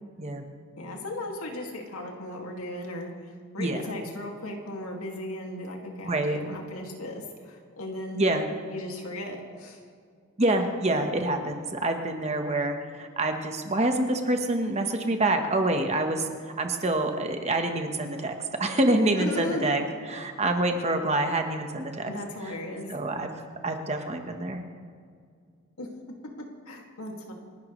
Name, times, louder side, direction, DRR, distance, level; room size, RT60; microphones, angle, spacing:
voice 1, 0.8-8.3 8.7-9.8 19.2-19.8 22.0-22.9 25.8-25.9 26.4-27.3, left 1 dB, 80° left, 1 dB, 2.3 m, -36 dB
voice 2, 6.0-6.4 8.1-8.4 10.4-16.3 16.6-19.8 20.1-22.1 22.9-23.3 23.6-24.6, right 2 dB, 30° right, 5 dB, 1.2 m, -26 dB
28.5 x 11.5 x 3.2 m, 2.1 s
head